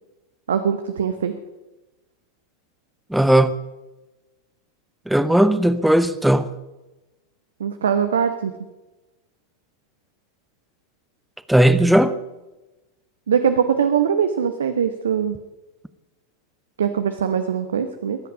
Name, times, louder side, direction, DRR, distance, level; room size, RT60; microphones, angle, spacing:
voice 1, 0.5-1.3 7.6-8.5 13.3-15.4 16.8-18.2, right 7 dB, 65° right, 0.9 m, -21 dB
voice 2, 3.1-3.5 5.1-6.5 11.5-12.1, right 1 dB, ahead, 0.8 m, -16 dB
22.0 x 9.4 x 5.4 m
figure-of-eight pair, 90°, 0 cm